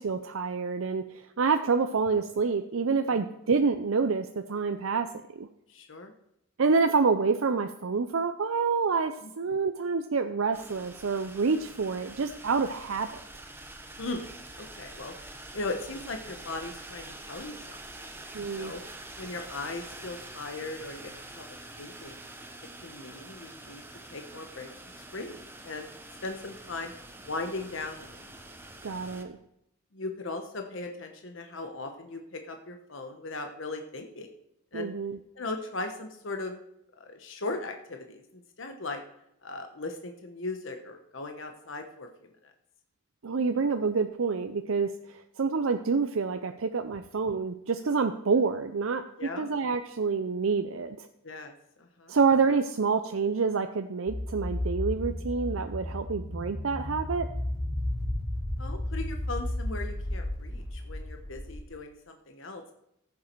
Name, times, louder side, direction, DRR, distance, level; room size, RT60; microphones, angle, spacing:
voice 1, 0.0-5.1 5.4-5.5 6.6-13.2 18.3-18.7 28.8-29.4 34.7-35.2 43.2-51.1 52.1-57.3, right 4 dB, 75° right, 7 dB, 0.6 m, -27 dB
voice 2, 5.7-6.1 9.2-9.3 14.0-17.8 18.4-18.8 19.2-21.4 21.8-22.2 22.8-23.8 24.1-24.7 25.0-25.9 26.2-26.9 27.2-28.3 29.9-34.3 34.7-34.9 35.4-36.6 37.0-39.0 39.4-42.5 49.2-49.5 51.2-51.5 51.8-52.1 58.6-62.7, left 2 dB, 65° left, 5 dB, 1.1 m, -38 dB
sound 1, 10.5-29.2, right 2 dB, 10° right, 1.0 m, -46 dB
sound 2, 54.1-61.6, left 1 dB, 50° left, 4.7 m, -33 dB
14.5 x 7.4 x 4.6 m, 0.80 s
head